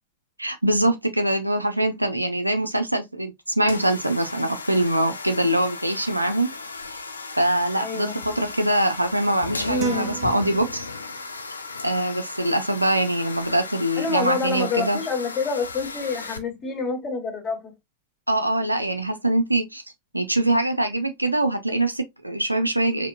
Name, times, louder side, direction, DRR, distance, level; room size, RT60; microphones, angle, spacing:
voice 1, 0.4-6.5 7.4-10.9 11.8-15.0 18.3-19.8 20.1-23.1, right 1 dB, 85° right, 0.6 m, -23 dB
sound 1, 3.6-16.4, left 4 dB, 75° left, 0.5 m, -36 dB
voice 2, 7.8-8.2 9.7-10.3 14.0-17.7, left 4 dB, 25° left, 1.8 m, -27 dB
sound 2, 9.8-11.3, right 14 dB, 40° right, 0.6 m, -34 dB
5.0 x 2.8 x 2.6 m
figure-of-eight pair, 90°, 0 cm